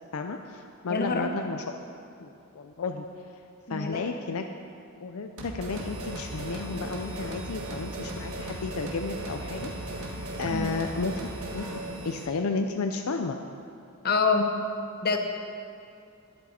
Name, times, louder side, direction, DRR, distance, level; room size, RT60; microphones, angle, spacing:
voice 1, 0.1-1.6 2.2-3.4 3.7-4.4 5.0-11.2 11.5-13.4, left 4 dB, 75° left, 5 dB, 0.5 m, -33 dB
voice 2, 0.9-1.3 3.7-4.1 10.5-10.7 14.0-14.5 15.0-15.2, left 4 dB, 45° left, 4 dB, 0.9 m, -26 dB
sound 1, 5.4-11.9, right 2 dB, 75° right, 1.5 m, -38 dB
sound 2, 5.7-12.3, right 1 dB, 60° right, 1.2 m, -42 dB
11.0 x 11.0 x 4.3 m, 2.5 s
head